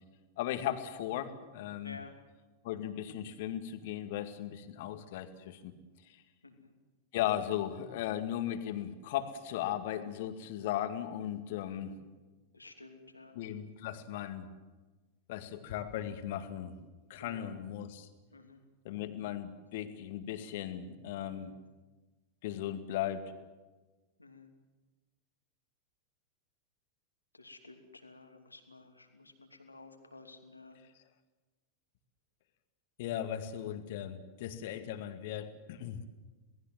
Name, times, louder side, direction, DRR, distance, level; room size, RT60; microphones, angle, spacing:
voice 1, 0.4-2.0 2.6-5.7 6.0-6.2 7.1-11.9 13.3-14.5 15.3-16.8 17.1-18.1 18.8-21.5 22.4-23.4 33.0-36.1, left 11 dB, 50° left, 9 dB, 2.1 m, -37 dB
voice 2, 1.8-2.1 6.4-6.7 11.7-12.0 12.5-13.4 17.2-17.5 18.3-18.6 21.2-21.5 24.2-24.5 27.3-30.8, left 3 dB, 80° left, 6 dB, 2.8 m, -53 dB
27.5 x 19.0 x 7.5 m, 1.2 s
figure-of-eight pair, 90°, 0 cm